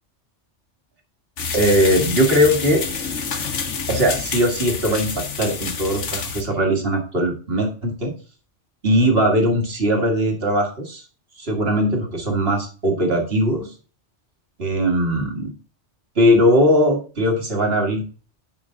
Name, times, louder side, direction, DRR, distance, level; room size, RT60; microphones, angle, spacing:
sound 1, 1.4-6.4, left 5 dB, 90° left, 1.5 m, -28 dB
voice 1, 1.5-2.8 3.9-8.1 8.8-11.0 11.4-13.7 14.6-15.5 16.2-18.0, equal, 55° right, 2 dB, 2.2 m, -19 dB
11.0 x 5.7 x 3.9 m, 0.37 s
omnidirectional pair, 1.2 m